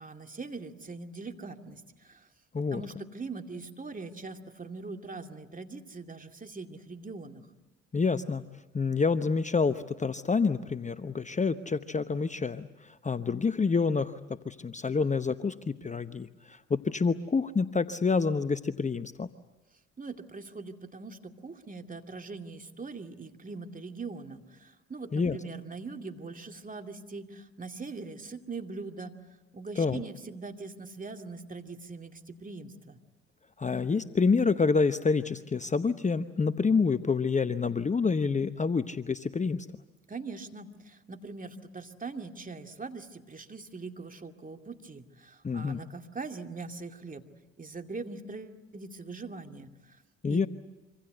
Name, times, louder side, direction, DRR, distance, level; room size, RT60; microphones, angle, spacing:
voice 1, 0.0-2.3 2.7-7.5 20.0-29.1 29.5-33.0 40.1-47.2 47.6-49.7 50.3-50.5, right 4 dB, 25° right, 5 dB, 2.5 m, -42 dB
voice 2, 7.9-8.4 8.7-14.2 14.4-19.3 25.1-25.4 29.8-30.0 33.6-39.7 45.4-45.8 50.2-50.5, left 4 dB, 20° left, 12 dB, 0.9 m, -28 dB
26.0 x 25.5 x 8.0 m, 1.0 s
hypercardioid pair, 55°, 33 cm